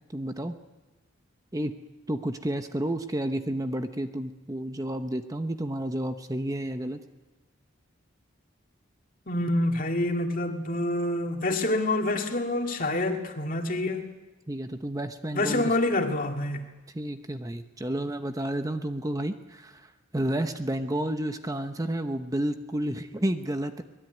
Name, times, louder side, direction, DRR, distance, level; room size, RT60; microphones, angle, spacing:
voice 1, 0.1-0.6 1.5-1.7 2.1-7.0 14.5-15.8 16.9-23.8, right 1 dB, 15° right, 7 dB, 0.9 m, -31 dB
voice 2, 9.3-14.1 15.3-16.7, left 2 dB, 45° left, 3 dB, 2.3 m, -27 dB
24.0 x 20.0 x 9.3 m, 1.2 s
head